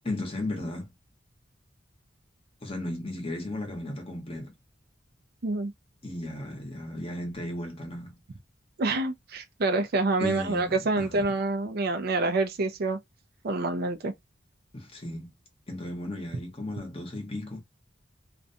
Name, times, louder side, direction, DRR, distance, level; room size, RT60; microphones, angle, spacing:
voice 1, 0.0-0.9 2.6-4.5 6.0-8.2 10.2-11.2 14.7-15.3 15.7-17.6, left 1 dB, 30° left, 0.9 m, -35 dB
voice 2, 8.8-13.0 13.4-14.1, right 2 dB, 55° right, 0.5 m, -27 dB
2.5 x 2.2 x 2.6 m
head